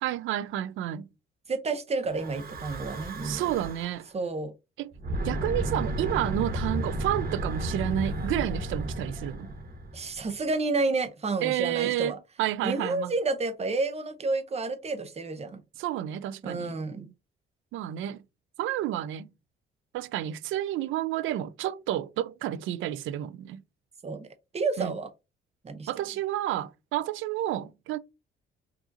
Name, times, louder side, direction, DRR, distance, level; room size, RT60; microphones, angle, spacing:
voice 1, 0.0-1.1 3.2-4.1 4.8-4.9 5.2-9.5 11.4-12.1 12.4-13.1 15.8-16.7 17.7-18.2 18.6-19.3 19.9-23.6 24.8-24.9 25.9-28.0, right 12 dB, 80° right, 0.4 m, -30 dB
voice 2, 1.5-3.5 4.1-4.5 9.9-12.2 12.6-15.6 16.4-17.1 24.0-24.3 24.5-25.1 25.6-25.9, right 3 dB, 30° right, 0.8 m, -30 dB
Breathing / Wind, 2.1-4.0 4.9-10.3, right 1 dB, 50° right, 1.3 m, -33 dB
4.8 x 2.7 x 2.6 m
cardioid pair, 90°, 20 cm